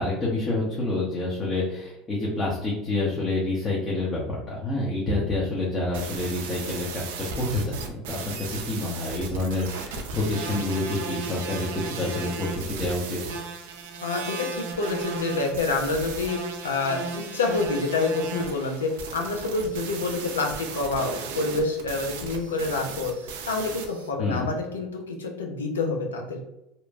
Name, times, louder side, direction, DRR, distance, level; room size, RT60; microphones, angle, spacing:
voice 1, 0.0-13.2 24.2-24.5, left 2 dB, 30° left, -5 dB, 0.8 m, -28 dB
sound 1, 5.6-5.7 5.9-24.1, right 4 dB, 75° right, 0.4 m, -36 dB
voice 2, 14.0-23.2 23.4-26.4, left 3 dB, 90° left, 2 dB, 0.5 m, -27 dB
3.0 x 2.2 x 2.4 m, 0.88 s
hypercardioid pair, 80°, 0 cm